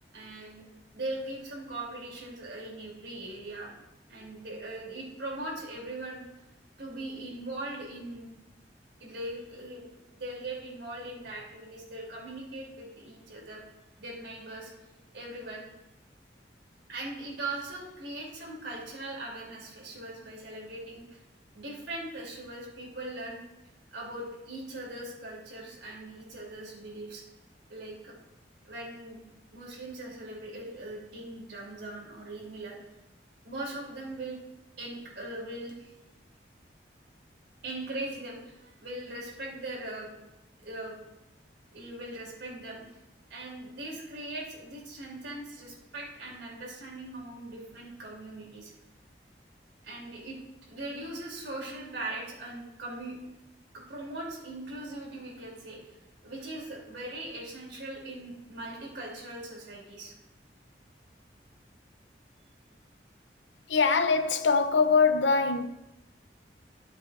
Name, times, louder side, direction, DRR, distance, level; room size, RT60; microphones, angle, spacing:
voice 1, 0.1-0.6 0.9-3.7 4.1-6.2 6.8-8.3 9.0-9.9 10.2-13.6 14.0-14.7 15.1-15.7 16.9-21.2 21.5-23.4 23.9-27.2 27.7-28.1 28.6-29.2 29.5-32.8 33.4-34.4 34.8-35.9 37.6-40.2 40.6-41.0 41.7-42.8 43.3-48.7 49.8-50.4 50.7-53.2 53.7-55.9 56.2-60.1, right 2 dB, 75° right, 3.3 m, -40 dB
voice 2, 63.7-65.7, left 4 dB, 85° left, 0.7 m, -23 dB
13.5 x 7.4 x 2.6 m
head